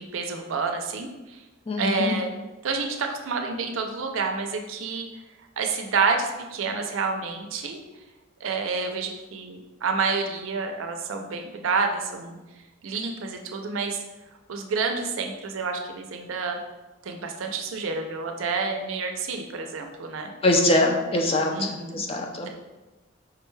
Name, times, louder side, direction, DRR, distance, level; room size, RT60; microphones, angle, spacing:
voice 1, 0.0-1.4 1.8-2.3 2.6-5.1 5.6-7.8 8.4-12.4 12.8-14.0 14.5-16.6 17.0-20.3 21.5-22.0, right 4 dB, 85° right, 4 dB, 0.5 m, -29 dB
voice 2, 1.7-2.1 20.4-22.5, left 2 dB, 30° left, 1 dB, 0.5 m, -23 dB
4.7 x 2.2 x 3.1 m, 1.1 s
head